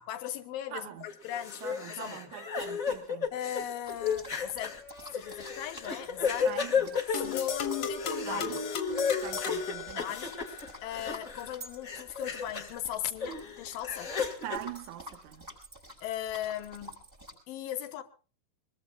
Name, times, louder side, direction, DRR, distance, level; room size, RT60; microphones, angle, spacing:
voice 1, 0.0-2.2 3.3-6.8 7.1-8.6 10.0-14.1 16.0-17.1 17.5-18.0, left 11 dB, 85° left, 3.0 m, -38 dB
voice 2, 0.7-1.1 1.6-3.3 6.4-7.0 8.3-8.7 9.2-10.1 14.4-15.5, right 11 dB, 65° right, 2.6 m, -42 dB
sound 1, 1.1-11.5 11.8-12.8 13.2-14.6, left 6 dB, 30° left, 1.7 m, -34 dB
sound 2, 3.8-17.3, left 1 dB, 20° right, 6.8 m, -50 dB
sound 3, 7.1-10.6, left 5 dB, 55° left, 2.6 m, -34 dB
24.0 x 21.5 x 2.4 m
omnidirectional pair, 3.9 m